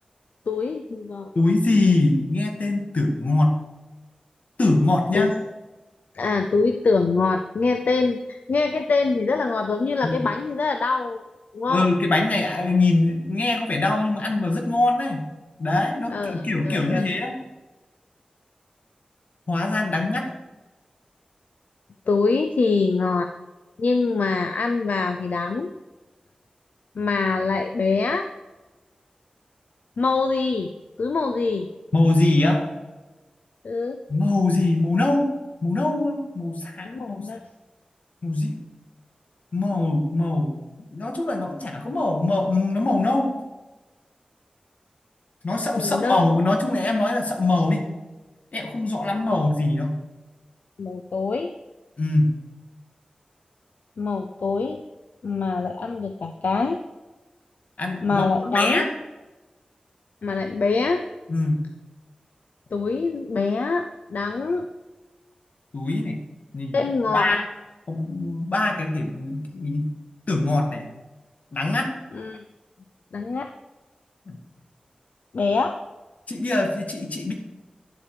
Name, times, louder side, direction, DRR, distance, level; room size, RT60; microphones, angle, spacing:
voice 1, 0.5-1.3 5.1-5.4 6.1-11.2 11.5-11.9 16.1-17.1 22.1-23.3 23.8-25.7 27.0-28.3 30.0-30.7 31.0-31.7 33.6-34.0 36.8-37.4 45.6-46.2 49.3-49.4 50.8-51.5 54.0-54.8 55.2-56.8 58.0-58.8 60.2-61.0 62.7-64.7 66.7-67.4 72.1-72.4 73.1-73.5 75.3-75.8, left 4 dB, 85° left, 7 dB, 0.5 m, -24 dB
voice 2, 1.4-3.6 4.6-5.3 10.0-10.3 11.7-15.3 15.6-17.4 19.5-20.3 31.9-32.7 34.1-35.3 35.6-37.2 38.2-38.6 39.5-40.5 40.8-43.3 45.4-47.9 48.5-50.0 52.0-52.3 57.8-58.3 58.5-58.9 61.3-61.6 65.7-66.2 66.5-66.8 67.1-67.4 67.9-69.9 70.3-70.8 71.5-71.9 74.3-74.4 76.3-77.3, left 2 dB, 70° left, 2 dB, 2.0 m, -23 dB
11.0 x 7.6 x 4.8 m, 1.2 s
cardioid pair, 50°, 3 cm